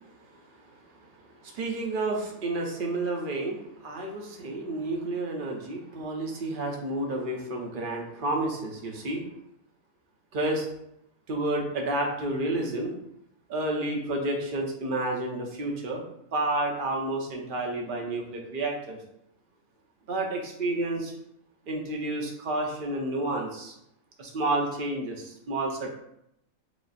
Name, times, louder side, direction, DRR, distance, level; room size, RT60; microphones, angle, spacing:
voice 1, 1.4-9.3 10.3-10.7 11.3-12.9 13.5-16.0 16.3-19.0 20.1-21.1 21.7-23.7 24.2-25.9, right 2 dB, 45° right, 0 dB, 0.8 m, -30 dB
4.8 x 2.0 x 4.1 m, 0.80 s
omnidirectional pair, 1.4 m